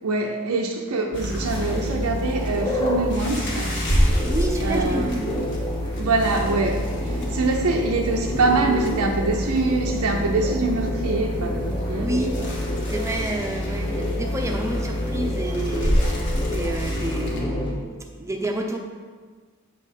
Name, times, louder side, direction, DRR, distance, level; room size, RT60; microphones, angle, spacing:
voice 1, 0.0-3.8 4.6-5.1 5.9-12.5, right 3 dB, 85° right, 0 dB, 0.6 m, -24 dB
sound 1, 1.1-17.4, equal, 55° left, 1.6 m, -30 dB
sound 2, 1.1-17.7, left 1 dB, 20° left, 1.1 m, -27 dB
voice 2, 4.3-5.2 12.0-12.4 12.8-17.8 18.2-18.8, right 1 dB, 15° right, 1 dB, 0.7 m, -29 dB
8.2 x 4.1 x 5.3 m, 1.5 s
head